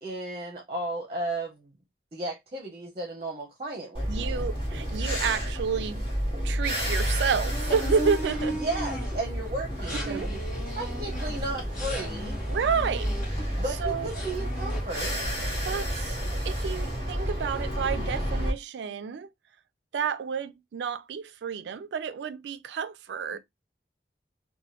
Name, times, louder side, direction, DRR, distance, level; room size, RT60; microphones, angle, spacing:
voice 1, 0.0-1.7 2.1-4.4 8.6-10.4 10.8-12.4 13.5-15.2 23.3-23.4, right 2 dB, 35° right, 0.7 m, -34 dB
sound 1, 3.9-18.5, equal, 30° left, 1.4 m, -31 dB
voice 2, 4.1-6.1 6.4-8.6 9.9-10.3 12.5-13.1 13.8-14.1 15.6-16.2 16.5-19.3 19.9-23.4, right 6 dB, 75° right, 0.3 m, -30 dB
sound 2, 7.5-9.3 9.7-13.8 14.1-14.8, equal, 45° left, 1.1 m, -37 dB
2.9 x 2.2 x 2.9 m
head